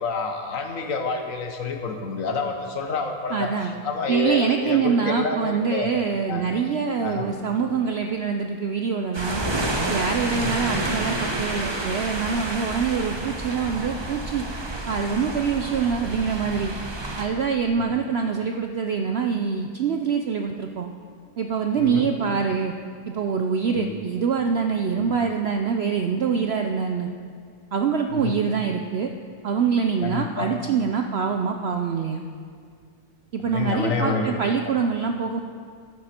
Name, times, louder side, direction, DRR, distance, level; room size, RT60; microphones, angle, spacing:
voice 1, 0.0-5.9 6.3-6.4 7.0-7.3 10.3-10.6 17.8-18.0 21.8-22.1 23.7-23.9 24.9-25.1 28.1-28.4 30.0-30.5 33.4-34.2, left 4 dB, 60° left, 4 dB, 1.4 m, -28 dB
voice 2, 3.3-3.7 4.1-9.4 9.9-14.4 14.9-16.7 17.2-20.9 21.4-22.7 23.1-27.1 27.7-29.1 29.4-32.2 33.3-35.4, right 6 dB, 65° right, 5 dB, 0.6 m, -25 dB
sound 1, 9.1-17.2, right 2 dB, 20° right, 0.8 m, -29 dB
13.5 x 10.5 x 4.3 m, 2.1 s
omnidirectional pair, 1.6 m